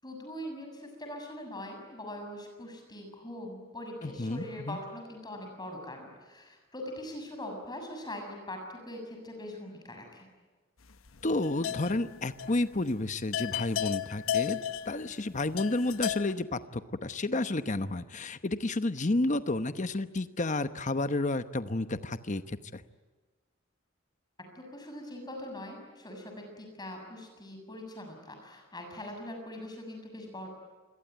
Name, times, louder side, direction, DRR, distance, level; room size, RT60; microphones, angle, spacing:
voice 1, 0.0-10.3 24.4-30.5, left 1 dB, 20° left, 3 dB, 7.0 m, -42 dB
voice 2, 4.0-4.8 11.2-14.6 14.9-22.8, left 2 dB, 35° left, 11 dB, 1.0 m, -31 dB
sound 1, 11.1-12.1 12.4-12.6 12.9-13.0 13.3-16.3, left 10 dB, 85° left, 1.0 m, -33 dB
27.5 x 22.0 x 9.3 m, 1.4 s
head